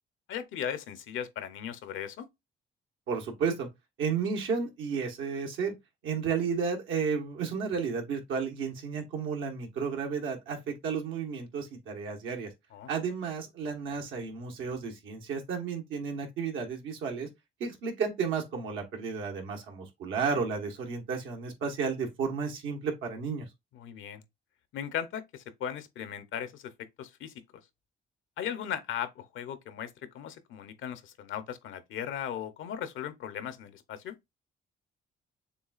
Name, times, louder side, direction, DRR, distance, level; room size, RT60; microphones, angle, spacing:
voice 1, 0.3-2.3 12.7-12.9 23.7-24.2 24.7-26.7 27.0-27.3 28.4-34.1, left 9 dB, 80° left, 0.8 m, -37 dB
voice 2, 3.1-3.7 4.0-5.7 6.0-12.5 12.9-17.3 17.6-23.4, right 5 dB, 85° right, 1.3 m, -32 dB
6.9 x 2.4 x 2.4 m
cardioid pair, 90°, 20 cm